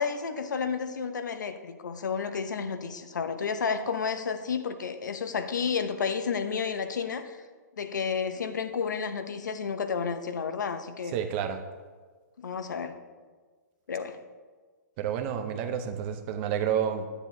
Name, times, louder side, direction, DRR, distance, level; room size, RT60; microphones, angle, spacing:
voice 1, 0.0-7.4 7.8-11.2 12.4-13.0 13.9-14.2, left 6 dB, 80° left, 9 dB, 0.8 m, -31 dB
voice 2, 11.1-11.6 15.0-17.1, right 9 dB, 40° right, 7 dB, 0.8 m, -29 dB
9.9 x 8.8 x 2.8 m, 1.4 s
hypercardioid pair, 135°, 10 cm